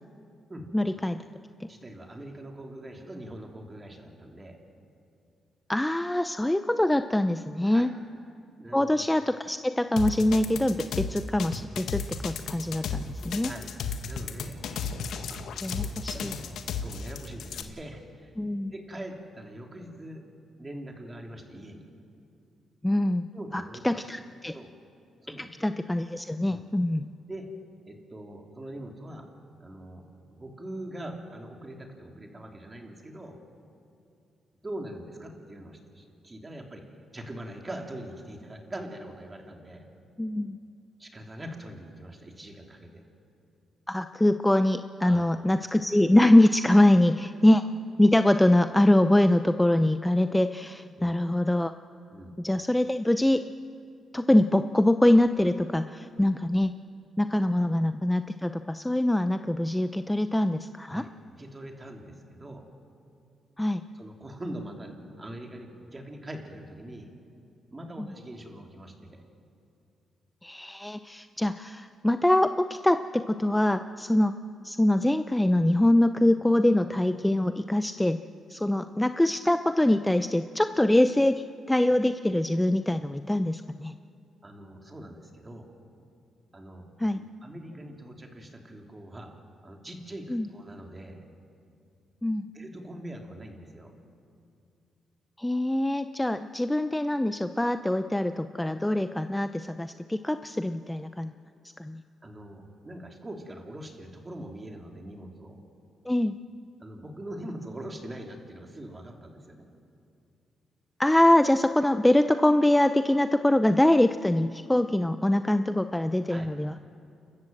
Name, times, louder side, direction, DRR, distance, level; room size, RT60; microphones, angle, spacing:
voice 1, 0.7-1.1 5.7-7.9 8.7-13.5 15.6-16.3 18.4-18.7 22.8-23.2 23.5-24.5 25.4-27.1 40.2-40.6 43.9-47.6 48.0-51.7 52.4-53.4 54.1-56.7 57.2-61.0 63.6-63.8 70.4-74.3 74.6-78.2 78.5-83.9 87.0-87.2 90.3-90.5 92.2-92.4 95.4-101.3 101.8-102.0 106.1-106.3 111.0-116.8, left 1 dB, 10° left, 10 dB, 0.6 m, -24 dB
voice 2, 1.7-4.6 7.6-7.9 8.6-9.0 10.8-10.9 13.4-13.7 14.0-14.6 15.3-18.3 18.7-20.2 20.5-21.9 23.3-24.0 24.5-24.7 25.2-25.5 26.4-26.6 27.3-27.5 27.9-29.3 29.6-30.0 30.3-33.4 34.6-36.9 37.1-39.9 41.0-43.0 45.0-45.3 51.0-51.2 52.1-52.4 60.9-61.1 61.4-62.7 63.9-67.1 67.7-69.2 84.4-85.7 86.5-86.9 87.2-91.2 92.5-93.9 102.2-105.6 106.8-109.7 116.3-116.5, right 1 dB, 25° right, 2 dB, 3.5 m, -42 dB
sound 1, 10.0-17.6, left 6 dB, 80° left, 1.4 m, -33 dB
29.5 x 13.5 x 7.8 m, 2.5 s
cardioid pair, 75°, 0 cm